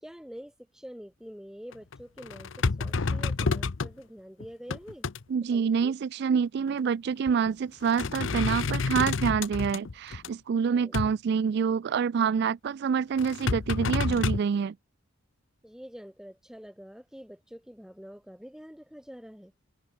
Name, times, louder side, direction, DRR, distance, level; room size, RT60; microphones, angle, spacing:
voice 1, 0.0-2.5 2.8-5.1 5.5-5.9 10.7-11.1 15.6-19.5, equal, 5° right, 1.0 m, -46 dB
sound 1, 1.7-3.9 4.4-5.2 6.7-6.8 7.3-7.5 7.8-10.3 10.9-11.1 13.2-14.4, left 4 dB, 75° left, 0.7 m, -29 dB
voice 2, 5.3-14.7, right 6 dB, 55° right, 0.3 m, -27 dB
head